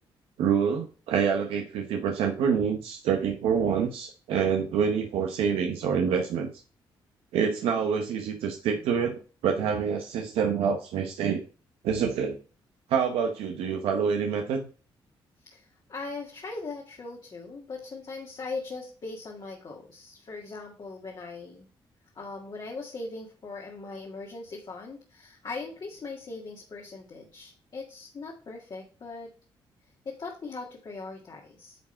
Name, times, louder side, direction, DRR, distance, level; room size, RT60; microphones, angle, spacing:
voice 1, 0.4-6.5 7.3-11.4 11.8-12.4 12.9-14.7, right 7 dB, 90° right, 3 dB, 0.9 m, -26 dB
voice 2, 15.4-21.7 22.2-29.3 30.1-31.8, left 3 dB, 50° left, -1 dB, 1.9 m, -40 dB
9.3 x 3.7 x 4.4 m, 0.37 s
cardioid pair, 65°, 9 cm